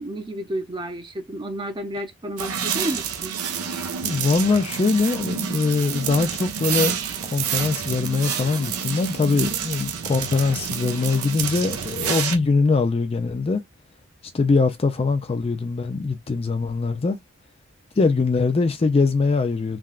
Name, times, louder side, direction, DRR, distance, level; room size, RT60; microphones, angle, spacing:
voice 1, 0.0-3.4, right 1 dB, 20° right, 0.6 m, -31 dB
sound 1, 2.4-12.4, right 7 dB, 85° right, 0.6 m, -28 dB
voice 2, 4.0-6.9 7.3-13.6 14.3-17.2 18.0-19.8, left 4 dB, 25° left, 0.3 m, -22 dB
3.5 x 2.2 x 2.3 m
head